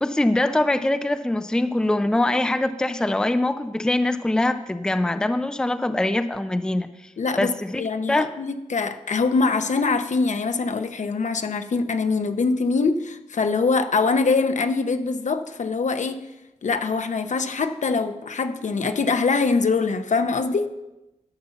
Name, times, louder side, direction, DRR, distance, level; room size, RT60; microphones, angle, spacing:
voice 1, 0.0-6.9 7.4-7.8 8.1-8.3, left 1 dB, 5° left, 10 dB, 0.4 m, -23 dB
voice 2, 7.2-16.2 16.6-20.7, left 4 dB, 60° left, 9 dB, 0.8 m, -23 dB
11.5 x 5.6 x 7.0 m, 0.99 s
wide cardioid pair, 85°, 14 cm